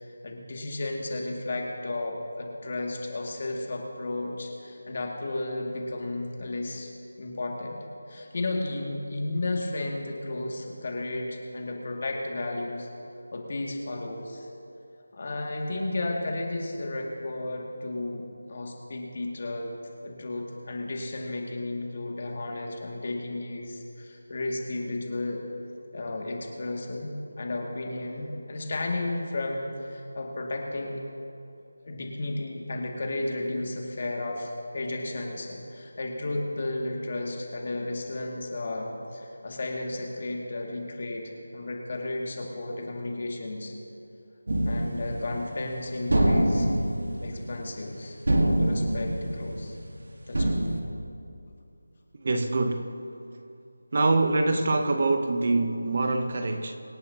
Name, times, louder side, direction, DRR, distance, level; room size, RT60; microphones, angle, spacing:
voice 1, 0.0-6.9 7.2-12.9 13.3-14.5 15.1-19.7 20.0-25.4 25.9-31.0 31.8-43.7 44.7-46.7 47.2-48.2 48.5-49.8 50.3-50.8, left 2 dB, 40° left, 0 dB, 2.3 m, -33 dB
sound 1, 44.5-45.7 46.1-48.0 48.2-49.9 50.3-50.8, right 1 dB, 75° right, 1.7 m, -25 dB
voice 2, 52.1-53.0 53.9-56.7, right 2 dB, 40° right, 7 dB, 0.9 m, -25 dB
25.5 x 8.5 x 2.9 m, 2.6 s
figure-of-eight pair, 170°, 0 cm